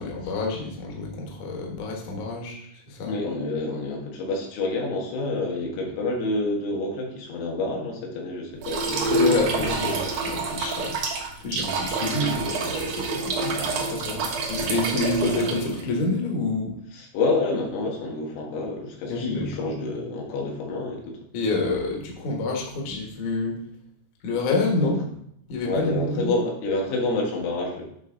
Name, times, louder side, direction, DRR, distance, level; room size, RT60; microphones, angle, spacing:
voice 1, 0.0-3.1 9.1-16.7 19.1-19.7 21.3-23.6 24.2-25.0 25.5-26.3, left 2 dB, 55° left, -1 dB, 2.3 m, -28 dB
voice 2, 3.1-9.9 16.9-21.2 24.8-24.9 25.6-27.8, left 2 dB, 90° left, -1 dB, 4.0 m, -28 dB
sound 1, 8.6-15.8, right 3 dB, 60° right, 2.2 m, -27 dB
9.4 x 5.4 x 3.9 m, 0.72 s
omnidirectional pair, 5.3 m